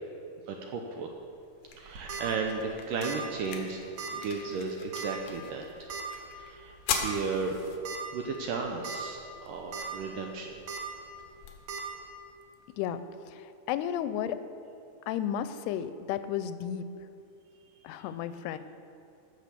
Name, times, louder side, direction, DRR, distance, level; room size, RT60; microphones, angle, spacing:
voice 1, 0.5-1.1 1.8-5.9 6.3-7.7 8.1-10.5 17.8-17.9, right 4 dB, 75° right, 2 dB, 2.0 m, -35 dB
sound 1, 1.1-13.1, left 7 dB, 70° left, 2.7 m, -42 dB
sound 2, 1.8-2.2 3.0-3.3 3.5-3.6 4.0-4.1 4.9-5.2 5.9-6.0 6.9-7.0 7.5-7.6 7.9-8.0 8.7-9.0 9.4-9.9 10.7-10.8 11.7-11.8, right 5 dB, 60° right, 2.3 m, -37 dB
voice 2, 12.8-14.4 15.1-16.9 17.8-18.6, left 10 dB, 90° left, 12 dB, 2.6 m, -33 dB
15.0 x 6.6 x 6.8 m, 2.5 s
omnidirectional pair, 4.6 m